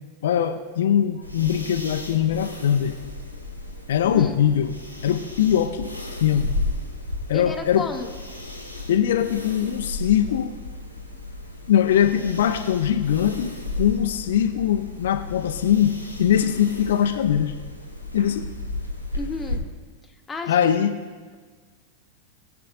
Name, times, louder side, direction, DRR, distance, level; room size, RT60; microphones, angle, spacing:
voice 1, 0.2-3.0 3.9-4.7 5.0-5.9 6.2-6.6 7.3-7.9 8.9-10.6 11.7-17.5 18.1-18.5 20.5-21.0, left 9 dB, 60° left, 6 dB, 0.6 m, -21 dB
sound 1, 1.2-19.6, left 2 dB, 85° right, 1.6 m, -34 dB
voice 2, 7.3-8.1 19.2-19.6 20.3-20.7, left 4 dB, 15° left, 3 dB, 1.1 m, -32 dB
21.0 x 7.7 x 2.5 m, 1.4 s
figure-of-eight pair, 90°, 0 cm